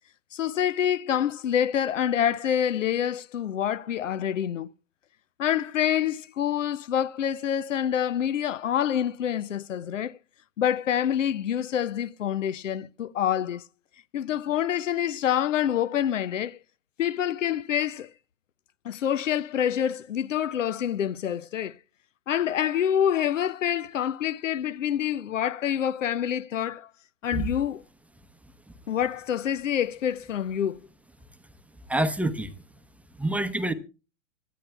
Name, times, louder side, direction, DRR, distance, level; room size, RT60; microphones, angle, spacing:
voice 1, 0.3-4.7 5.4-10.2 10.6-13.6 14.1-16.6 17.0-18.1 18.8-21.8 22.3-26.9 27.2-27.8 28.9-30.8, left 9 dB, 75° left, 0.7 m, -26 dB
voice 2, 31.9-32.5 33.2-33.7, right 1 dB, 5° right, 0.8 m, -26 dB
25.0 x 10.0 x 2.3 m
hypercardioid pair, 110°, 38 cm